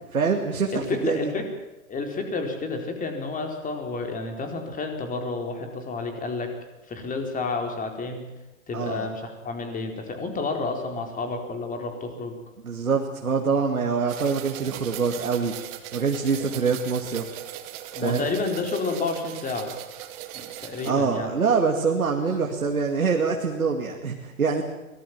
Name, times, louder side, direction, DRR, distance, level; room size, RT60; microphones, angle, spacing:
voice 1, 0.1-1.3 8.7-9.1 12.6-15.5 15.9-17.3 18.0-18.3 20.9-24.6, right 5 dB, 85° right, 2 dB, 2.6 m, -25 dB
voice 2, 0.7-1.5 1.9-6.5 6.9-8.3 8.7-12.4 17.9-19.7 20.3-21.3, left 3 dB, 20° left, 4 dB, 4.4 m, -30 dB
sound 1, 14.1-20.9, right 12 dB, 40° right, 2.2 m, -38 dB
24.0 x 18.5 x 7.6 m, 1.0 s
figure-of-eight pair, 110°, 42 cm